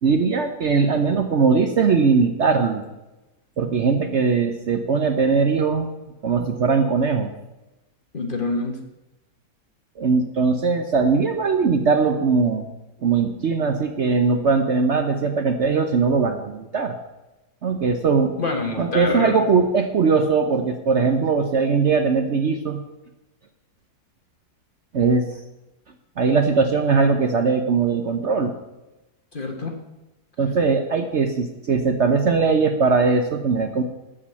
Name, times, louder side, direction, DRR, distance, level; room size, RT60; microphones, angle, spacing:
voice 1, 0.0-2.8 3.6-5.9 6.2-7.3 10.0-12.7 13.0-17.0 17.6-18.4 18.8-22.8 24.9-25.3 26.2-28.5 30.4-33.8, right 5 dB, 55° right, 6 dB, 0.9 m, -20 dB
voice 2, 8.1-8.8 18.4-19.3 29.3-29.8, left 2 dB, 35° left, 3 dB, 1.3 m, -26 dB
12.5 x 5.0 x 8.4 m, 1.0 s
omnidirectional pair, 1.7 m